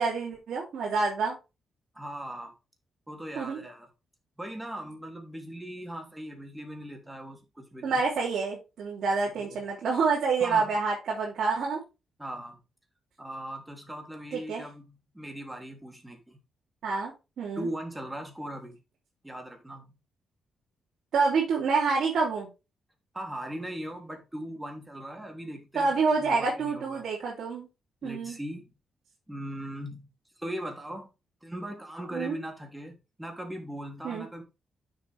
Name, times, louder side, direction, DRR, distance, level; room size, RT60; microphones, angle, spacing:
voice 1, 0.0-1.4 3.3-3.6 7.8-11.8 14.3-14.6 16.8-17.1 17.4-17.7 21.1-22.5 25.7-27.7 28.0-28.4 32.1-32.3 34.0-34.3, right 4 dB, 75° right, 3.0 m, -27 dB
voice 2, 1.9-2.5 3.1-3.9 4.4-8.0 9.4-9.6 10.4-10.8 12.2-12.6 13.2-16.4 17.6-18.8 19.2-19.8 23.1-25.9 26.2-27.0 28.0-28.7 29.3-30.1 30.4-31.1 31.4-34.4, right 1 dB, 10° right, 3.1 m, -39 dB
9.1 x 6.7 x 3.5 m
cardioid pair, 80°, 0 cm